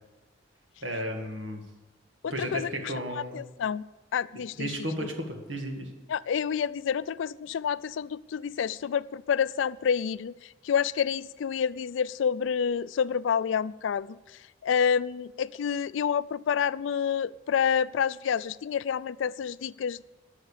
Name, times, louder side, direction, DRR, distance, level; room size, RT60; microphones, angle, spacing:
voice 1, 0.8-1.6 2.3-3.4 4.6-5.9, right 1 dB, 75° right, 3 dB, 2.0 m, -33 dB
voice 2, 2.2-3.8 4.1-4.7 6.1-10.3 10.6-14.1 14.6-20.0, left 7 dB, 80° left, 18 dB, 0.4 m, -28 dB
13.0 x 6.6 x 8.5 m, 1.1 s
head